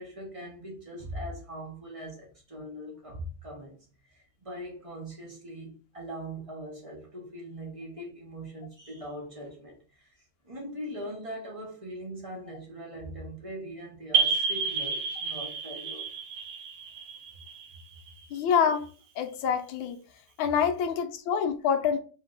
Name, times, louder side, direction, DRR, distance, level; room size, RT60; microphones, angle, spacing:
voice 1, 0.0-3.8 4.1-16.1, equal, 45° right, 0.4 m, -41 dB
sound 1, 14.1-18.6, right 6 dB, 75° right, 1.3 m, -30 dB
voice 2, 18.3-18.9 19.2-20.0 20.4-22.0, left 7 dB, 75° left, 1.2 m, -26 dB
3.6 x 3.2 x 3.8 m
omnidirectional pair, 2.4 m